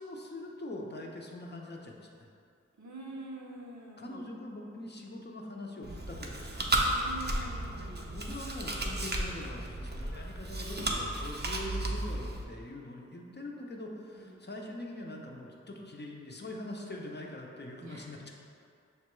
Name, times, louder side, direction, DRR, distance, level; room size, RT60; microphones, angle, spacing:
voice 1, 0.0-2.1 4.0-6.5 8.1-18.2, left 1 dB, 35° left, 0 dB, 0.5 m, -43 dB
voice 2, 2.8-4.3 6.9-8.3 14.1-14.5 17.8-18.2, right 2 dB, 80° right, -2 dB, 0.6 m, -46 dB
Chewing mastication, 5.8-12.4, right 1 dB, 35° right, 0.5 m, -34 dB
6.5 x 2.2 x 3.0 m, 2.4 s
wide cardioid pair, 45°, 29 cm